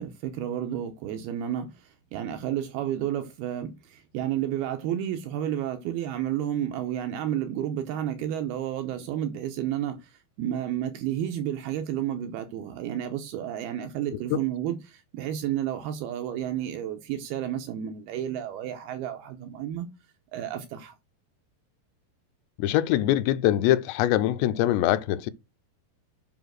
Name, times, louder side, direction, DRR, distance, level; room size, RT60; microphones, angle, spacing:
voice 1, 0.0-19.9 20.3-20.9, right 11 dB, 75° right, 2.5 m, -31 dB
voice 2, 22.6-25.3, left 13 dB, 85° left, 2.9 m, -23 dB
8.0 x 5.6 x 6.2 m
omnidirectional pair, 5.0 m